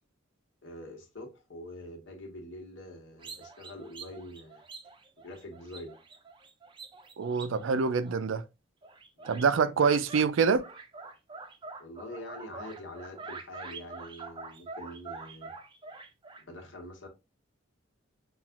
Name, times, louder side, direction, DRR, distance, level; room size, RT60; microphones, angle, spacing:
voice 1, 0.6-4.6 5.2-6.0 9.2-9.4 11.8-15.5 16.5-17.1, left 1 dB, 70° left, 1.3 m, -45 dB
sound 1, 3.2-8.5 8.8-10.3 10.6-16.4, right 4 dB, 25° right, 0.5 m, -46 dB
voice 2, 7.2-8.4 9.2-10.6, right 5 dB, 80° right, 0.4 m, -25 dB
5.7 x 2.4 x 2.4 m
head